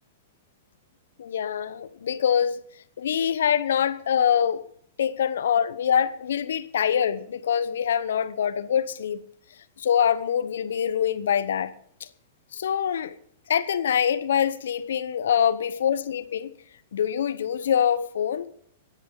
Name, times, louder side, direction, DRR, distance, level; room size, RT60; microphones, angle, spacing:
voice 1, 1.2-2.6 3.0-4.7 5.0-9.2 9.8-11.7 12.0-12.1 12.5-13.1 13.5-16.5 16.9-18.5, left 8 dB, 70° left, 1.0 m, -24 dB
25.5 x 9.4 x 3.9 m
hypercardioid pair, 110°, 0 cm